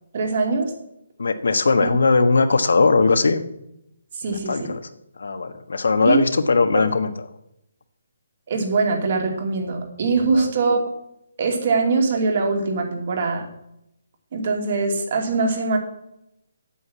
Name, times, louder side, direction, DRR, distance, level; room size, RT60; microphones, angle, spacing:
voice 1, 0.1-0.7 1.8-1.9 4.1-4.6 6.1-6.2 6.7-6.8 8.5-10.8 11.4-13.5 14.3-15.8, right 4 dB, 40° right, 3 dB, 2.7 m, -22 dB
voice 2, 1.2-3.4 4.3-4.8 5.2-7.3 10.3-10.5, left 4 dB, 80° left, 9 dB, 1.3 m, -19 dB
8.5 x 8.0 x 8.5 m, 0.81 s
hypercardioid pair, 170°, 0 cm